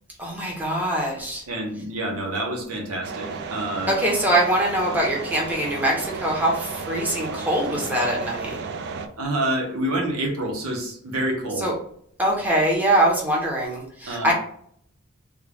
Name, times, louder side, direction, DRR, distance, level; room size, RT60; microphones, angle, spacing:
voice 1, 0.2-1.4 3.9-8.6 11.6-11.7 12.2-14.3, right 1 dB, 10° right, -3 dB, 0.9 m, -23 dB
voice 2, 1.5-3.9 9.2-11.7 14.1-14.3, right 1 dB, 90° right, 1 dB, 1.0 m, -27 dB
sound 1, 3.0-9.1, right 4 dB, 50° right, 0.4 m, -33 dB
3.6 x 2.3 x 3.4 m, 0.63 s
head